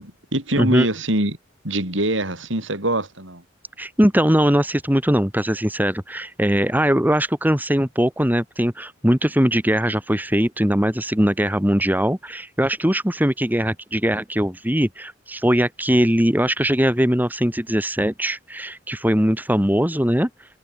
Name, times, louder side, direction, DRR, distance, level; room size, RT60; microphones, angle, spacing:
voice 1, 0.0-1.4 1.6-3.4, right 1 dB, 65° right, 7.9 m, -24 dB
voice 2, 3.8-20.3, equal, 10° right, 2.7 m, -20 dB
head